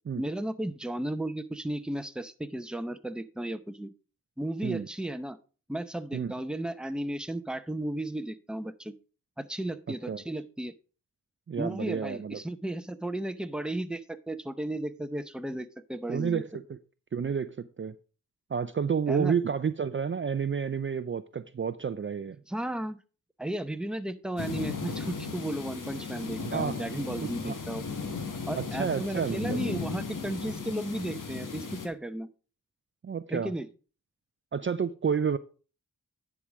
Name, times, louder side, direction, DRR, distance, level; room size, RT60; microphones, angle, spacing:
voice 1, 0.2-3.9 4.4-5.4 5.7-8.9 9.4-10.7 11.6-16.4 19.1-19.3 22.5-23.0 23.4-27.8 28.5-32.3 33.3-33.7, right 1 dB, ahead, 0.7 m, -34 dB
voice 2, 9.9-10.2 11.5-12.4 16.1-16.8 17.1-17.9 18.5-22.4 26.4-26.9 27.2-27.6 28.6-29.6 33.0-33.5 34.5-35.4, right 6 dB, 35° right, 0.5 m, -30 dB
sound 1, 24.4-31.9, left 4 dB, 65° left, 1.7 m, -36 dB
10.5 x 4.9 x 5.0 m
cardioid pair, 60°, 33 cm